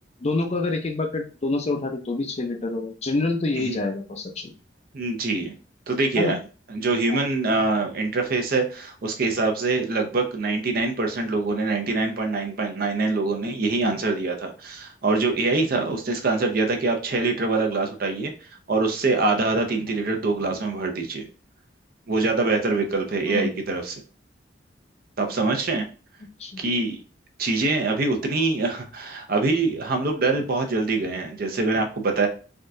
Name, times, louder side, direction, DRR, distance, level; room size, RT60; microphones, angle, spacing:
voice 1, 0.2-4.5 6.2-6.3 7.1-7.2 10.5-10.6 23.3-23.5 26.4-26.6, left 2 dB, 35° left, 4 dB, 0.5 m, -27 dB
voice 2, 4.9-5.5 5.9-6.4 6.7-18.3 18.7-21.3 22.1-24.0 25.2-25.9 26.6-27.0 27.4-32.3, right 3 dB, 55° right, 4 dB, 0.6 m, -24 dB
3.5 x 2.3 x 2.6 m, 0.35 s
head